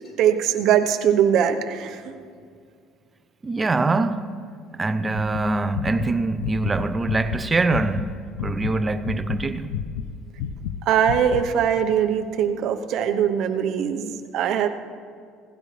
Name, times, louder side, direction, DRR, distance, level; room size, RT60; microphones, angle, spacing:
voice 1, 0.2-2.1 10.9-14.7, right 9 dB, 65° right, 0.9 m, -21 dB
voice 2, 3.4-4.3 4.7-9.7, right 3 dB, 20° right, 0.7 m, -24 dB
sound 1, 5.1-8.1 8.3-10.8 11.0-11.5, left 8 dB, 85° left, 0.7 m, -30 dB
17.5 x 16.0 x 3.4 m
supercardioid pair, 90°, 0 cm